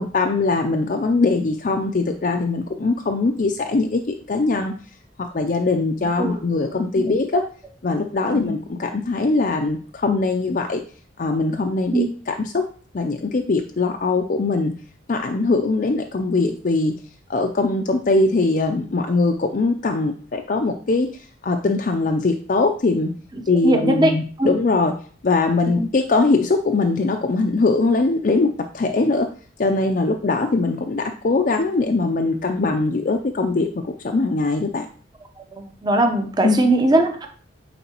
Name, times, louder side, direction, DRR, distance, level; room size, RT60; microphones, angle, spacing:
voice 1, 0.0-4.7 5.3-7.4 7.8-10.8 11.2-12.6 12.9-14.7 15.1-16.9 17.3-23.1 23.5-24.9 25.2-29.3 29.6-34.9 36.4-36.6, left 3 dB, 45° left, 3 dB, 0.4 m, -21 dB
voice 2, 23.6-24.1 24.4-24.5 25.7-25.8 35.5-37.3, right 1 dB, 20° right, 5 dB, 0.7 m, -20 dB
9.2 x 3.9 x 2.9 m, 0.43 s
head